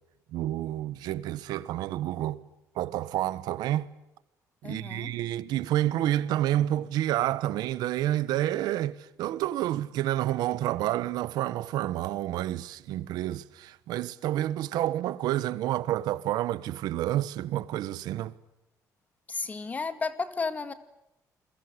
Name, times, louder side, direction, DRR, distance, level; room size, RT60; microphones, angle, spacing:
voice 1, 0.3-2.4 2.7-3.9 4.6-18.3, right 13 dB, 85° right, 1.3 m, -29 dB
voice 2, 4.6-5.2 19.3-20.7, left 4 dB, 20° left, 2.1 m, -33 dB
29.0 x 22.5 x 8.1 m
cardioid pair, 155°, 7 cm